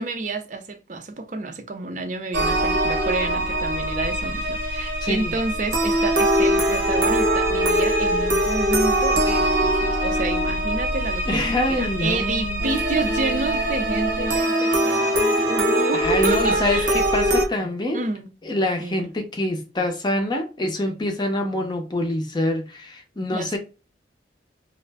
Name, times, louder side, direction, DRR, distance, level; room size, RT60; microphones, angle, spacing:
voice 1, 0.0-16.9 17.9-18.3 18.8-19.1 23.3-23.6, right 3 dB, 40° right, 0.5 m, -29 dB
sound 1, 2.3-17.5, right 1 dB, 70° right, 0.9 m, -22 dB
voice 2, 5.0-5.3 11.3-12.6 15.9-18.0 18.4-23.6, left 1 dB, 25° left, 0.6 m, -25 dB
2.4 x 2.0 x 3.3 m
head